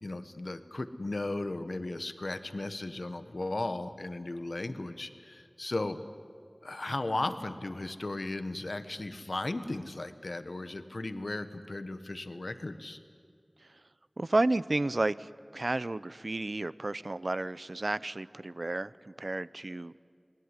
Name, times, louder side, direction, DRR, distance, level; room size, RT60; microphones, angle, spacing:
voice 1, 0.0-6.0 6.6-13.0, left 2 dB, 80° left, 10 dB, 1.2 m, -36 dB
voice 2, 14.2-20.0, right 2 dB, 70° right, 17 dB, 0.6 m, -32 dB
28.5 x 20.0 x 9.7 m, 2.2 s
wide cardioid pair, 50°, 0 cm